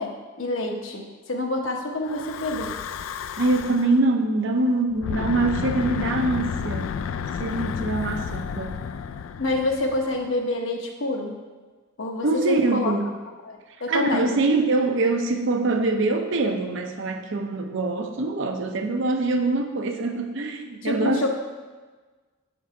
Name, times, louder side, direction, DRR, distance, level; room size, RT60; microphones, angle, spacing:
voice 1, 0.0-2.7 9.4-11.3 12.0-12.9 13.4-14.3 20.8-21.3, left 2 dB, 70° left, 2 dB, 0.9 m, -27 dB
Breathing / Wind, 2.0-4.0 4.9-10.3, left 6 dB, 85° left, 0.3 m, -31 dB
voice 2, 3.4-7.0 7.4-8.8 12.2-13.1 13.9-21.3, right 2 dB, 65° right, 5 dB, 0.7 m, -24 dB
7.6 x 3.9 x 4.6 m, 1.3 s
head